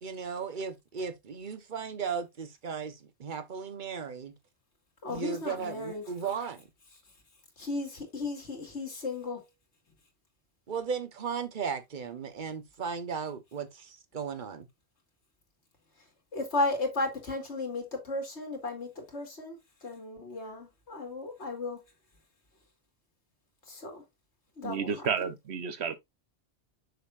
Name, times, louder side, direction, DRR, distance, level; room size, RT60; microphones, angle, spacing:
voice 1, 0.0-4.3 5.1-6.7 10.7-14.7, right 6 dB, 45° right, 1.1 m, -36 dB
voice 2, 5.0-6.0 7.6-9.4 16.3-21.8 23.7-24.0 24.6-25.3, left 2 dB, 90° left, 2.7 m, -35 dB
voice 3, 24.6-26.0, right 6 dB, 75° right, 1.2 m, -31 dB
6.6 x 6.5 x 2.5 m
omnidirectional pair, 1.1 m